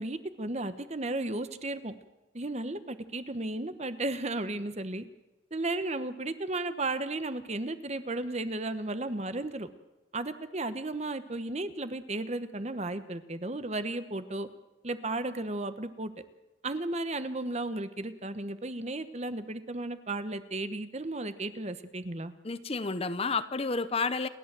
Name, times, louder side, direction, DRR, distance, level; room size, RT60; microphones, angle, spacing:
voice 1, 0.0-1.9 2.3-5.0 5.5-9.7 10.1-14.5 14.8-16.1 16.6-22.3, right 2 dB, 35° right, 11 dB, 1.1 m, -34 dB
voice 2, 22.4-24.3, left 4 dB, 30° left, 13 dB, 0.8 m, -30 dB
29.5 x 11.5 x 7.5 m, 1.0 s
head